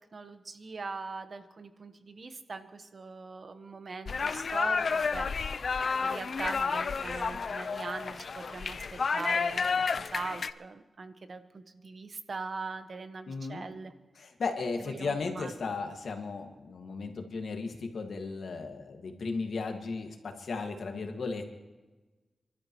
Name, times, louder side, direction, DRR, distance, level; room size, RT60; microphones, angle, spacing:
voice 1, 0.1-5.3 6.0-8.8 9.1-9.8 10.1-13.9 14.8-15.5, right 4 dB, 60° right, 9 dB, 1.1 m, -41 dB
sound 1, 4.1-10.5, left 5 dB, 70° left, 0.5 m, -31 dB
voice 2, 13.3-13.7 14.2-21.4, left 4 dB, 85° left, 4 dB, 1.9 m, -35 dB
29.5 x 12.5 x 3.1 m, 1.2 s
cardioid pair, 75°, 0 cm